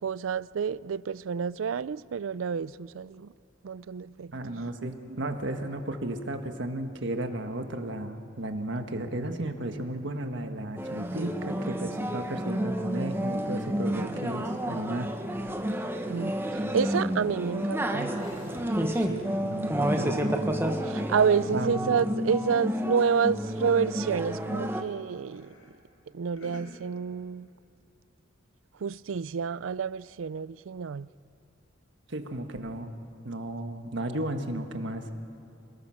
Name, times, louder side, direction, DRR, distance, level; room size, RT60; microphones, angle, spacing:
voice 1, 0.0-3.3 3.6-4.3 16.1-18.6 20.0-20.2 20.8-25.5 26.1-27.5 28.8-31.1, right 6 dB, 85° right, 0.4 m, -29 dB
voice 2, 4.3-15.1 18.8-20.4 21.5-22.0 32.1-32.9 33.2-35.1, right 1 dB, 65° right, 1.6 m, -34 dB
sound 1, 10.8-24.8, equal, 10° right, 1.1 m, -30 dB
sound 2, 18.2-22.3 22.7-24.0 24.3-24.7 25.2-25.7 26.0-26.6, equal, 80° left, 4.3 m, -54 dB
28.0 x 18.5 x 6.4 m
head